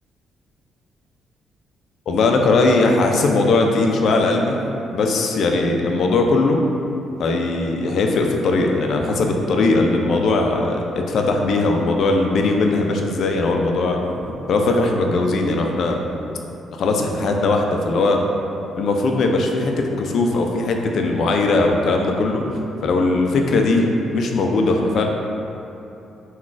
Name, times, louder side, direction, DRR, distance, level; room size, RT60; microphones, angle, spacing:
voice 1, 2.1-4.6 4.9-6.6 7.2-14.0 14.5-16.0 16.8-18.2 18.8-25.0, left 3 dB, 65° left, 2 dB, 0.3 m, -19 dB
3.8 x 2.3 x 2.4 m, 2.8 s
cardioid pair, 90°, 0 cm